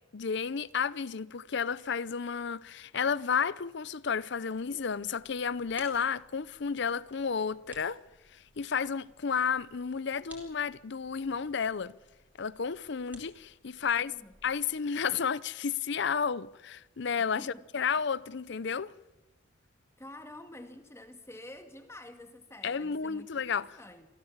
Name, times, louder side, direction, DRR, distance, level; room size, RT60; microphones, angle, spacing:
voice 1, 0.1-8.0 8.3-11.9 12.4-14.1 14.4-17.5 17.7-18.9 22.6-23.7, left 6 dB, 60° left, 0.6 m, -32 dB
sound 1, 4.5-14.6, right 1 dB, 10° right, 4.3 m, -58 dB
voice 2, 13.8-14.3 17.2-17.7 20.0-24.1, left 1 dB, 15° left, 1.9 m, -49 dB
26.0 x 16.0 x 7.3 m
head